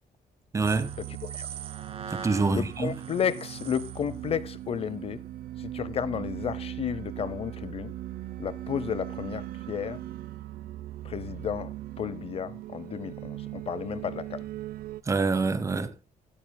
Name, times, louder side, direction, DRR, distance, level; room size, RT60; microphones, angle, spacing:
voice 1, 0.5-1.0 2.1-2.9 15.1-15.9, right 4 dB, 20° right, 0.9 m, -26 dB
sound 1, 0.6-4.2, right 6 dB, 40° right, 2.3 m, -42 dB
sound 2, 0.6-15.0, right 14 dB, 75° right, 0.6 m, -39 dB
voice 2, 2.5-5.2 5.6-7.9 8.4-10.0 11.0-14.4, left 8 dB, 40° left, 0.6 m, -32 dB
17.5 x 13.5 x 2.2 m
cardioid pair, 175°, 15 cm